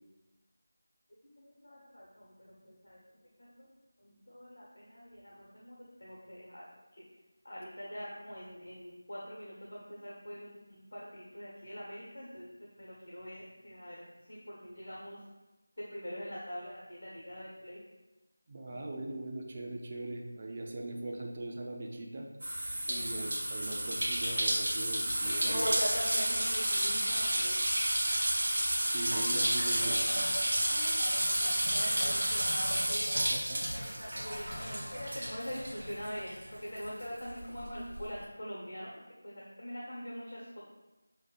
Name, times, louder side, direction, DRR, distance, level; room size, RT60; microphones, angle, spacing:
voice 1, 1.4-3.7 4.0-6.6 6.9-7.1 7.4-12.5 12.8-15.2 15.8-17.8 22.9-23.3 25.2-27.8 30.7-33.1 33.8-40.6, equal, 60° left, -4 dB, 1.3 m, -43 dB
voice 2, 18.5-22.3 22.9-25.6 28.9-30.0 33.1-34.0, right 2 dB, 30° right, 0 dB, 0.6 m, -40 dB
sound 1, 22.4-36.4 36.8-38.0, right 1 dB, 50° right, 1.3 m, -31 dB
6.3 x 3.2 x 2.5 m, 1.1 s
figure-of-eight pair, 170°, 0 cm